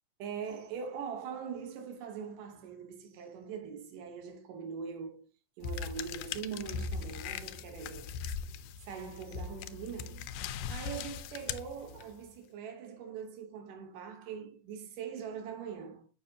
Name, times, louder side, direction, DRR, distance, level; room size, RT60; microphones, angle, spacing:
voice 1, 0.2-5.3 5.6-8.1 8.8-10.4 10.7-16.1, right 7 dB, 85° right, 2.8 m, -42 dB
sound 1, 5.6-12.3, left 6 dB, 85° left, 2.1 m, -40 dB
7.5 x 5.7 x 2.8 m
omnidirectional pair, 3.7 m